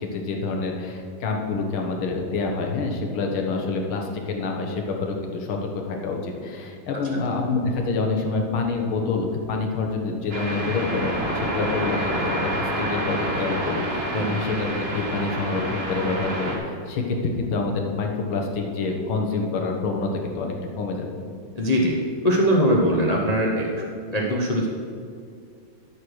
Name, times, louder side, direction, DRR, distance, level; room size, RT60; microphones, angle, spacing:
voice 1, 0.0-5.6 5.9-21.1, left 3 dB, 85° left, 1 dB, 2.0 m, -27 dB
sound 1, 10.3-16.6, right 1 dB, 35° right, 1.3 m, -28 dB
voice 2, 21.5-22.0 22.2-23.8 24.1-24.7, equal, 65° left, -2 dB, 0.4 m, -21 dB
12.5 x 4.9 x 6.2 m, 2.3 s
omnidirectional pair, 2.2 m